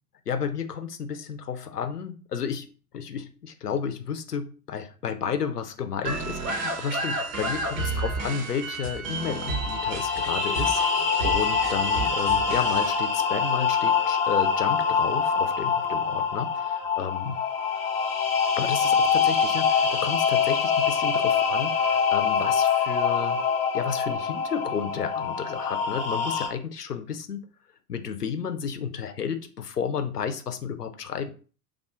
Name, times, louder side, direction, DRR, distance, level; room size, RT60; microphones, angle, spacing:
voice 1, 0.3-2.7 2.9-17.4 18.5-23.4 23.7-27.5 27.9-31.3, left 7 dB, 90° left, 0.6 m, -32 dB
sound 1, 6.0-12.9, right 3 dB, 60° right, 1.1 m, -32 dB
sound 2, 9.2-26.5, left 6 dB, 15° left, 0.4 m, -25 dB
3.4 x 2.4 x 3.8 m
figure-of-eight pair, 80°, 45 cm